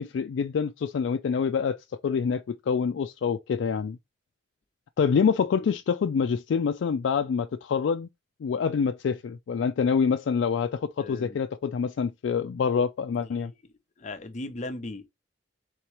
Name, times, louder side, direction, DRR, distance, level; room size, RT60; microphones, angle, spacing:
voice 1, 0.0-1.8 2.0-4.0 5.0-8.1 8.4-13.5, left 6 dB, 90° left, 0.3 m, -26 dB
voice 2, 11.0-11.4 13.1-13.5 14.0-15.1, left 2 dB, 40° left, 0.6 m, -38 dB
3.9 x 2.9 x 4.6 m
head